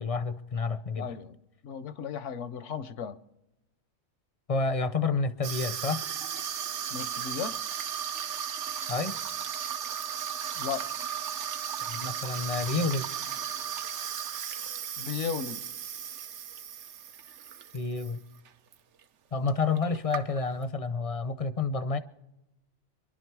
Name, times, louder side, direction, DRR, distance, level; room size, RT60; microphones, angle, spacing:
voice 1, 0.0-1.1 4.5-6.0 8.9-9.2 11.9-13.1 17.7-18.2 19.3-22.0, left 4 dB, 40° left, 0.6 m, -29 dB
voice 2, 1.0-3.2 6.9-7.6 10.6-10.9 15.0-15.6, left 7 dB, 75° left, 1.1 m, -35 dB
Water tap faucet / Sink (filling or washing), 5.4-18.1 18.4-18.7 19.5-19.6 19.7-20.6, right 8 dB, 75° right, 1.1 m, -35 dB
25.0 x 11.5 x 4.7 m
omnidirectional pair, 1.2 m